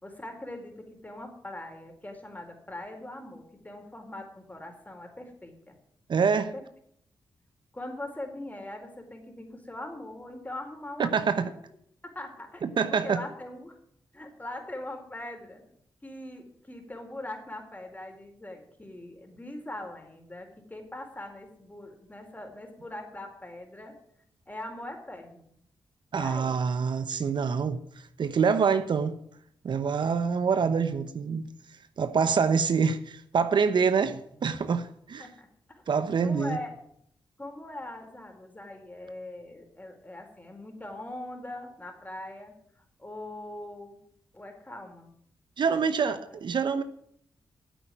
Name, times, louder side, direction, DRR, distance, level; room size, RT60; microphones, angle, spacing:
voice 1, 0.0-5.8 6.4-6.6 7.7-11.5 12.0-12.6 12.9-13.8 14.1-15.6 16.0-23.9 24.5-25.5 26.1-26.5 35.2-35.5 35.7-35.8 36.2-36.7 37.4-42.5 43.0-44.0 44.3-45.1 45.7-46.4, left 1 dB, 20° left, 4.2 m, -41 dB
voice 2, 6.1-6.5 11.0-11.5 12.6-13.2 26.1-27.8 28.2-29.1 29.6-31.5 32.0-35.3 35.9-36.6 45.6-46.8, right 6 dB, 65° right, 0.9 m, -26 dB
9.4 x 8.1 x 9.3 m
supercardioid pair, 45°, 8 cm